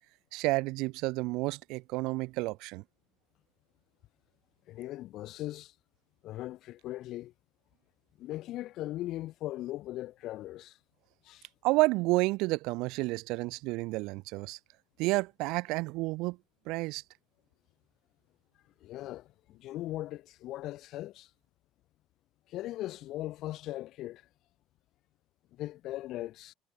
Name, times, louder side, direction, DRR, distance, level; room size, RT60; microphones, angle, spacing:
voice 1, 0.3-2.8 11.6-14.6 15.0-16.4 16.7-17.0, right 22 dB, 80° right, 2.0 m, -30 dB
voice 2, 4.7-5.7 6.2-7.3 8.2-10.8 11.2-11.5 18.8-21.3 22.5-24.2 25.5-26.5, left 15 dB, 60° left, 1.4 m, -39 dB
cardioid pair, 140°, 0 cm